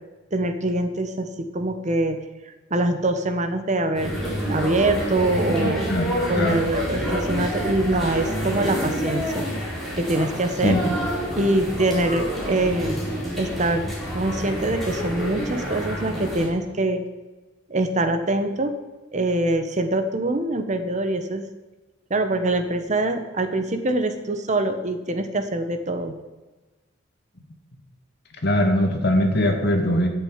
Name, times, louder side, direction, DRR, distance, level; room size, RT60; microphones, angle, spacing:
voice 1, 0.3-2.2 2.7-5.9 6.3-9.4 9.9-10.8 11.4-13.0 13.4-17.0 17.7-18.7 19.1-21.5 22.1-26.1, right 2 dB, 40° right, 7 dB, 1.1 m, -24 dB
sound 1, 3.9-16.5, equal, ahead, 4.2 m, -28 dB
voice 2, 5.6-6.6 10.6-10.8 28.4-30.1, left 1 dB, 60° left, 3 dB, 2.1 m, -21 dB
12.0 x 7.1 x 8.8 m, 1.2 s
head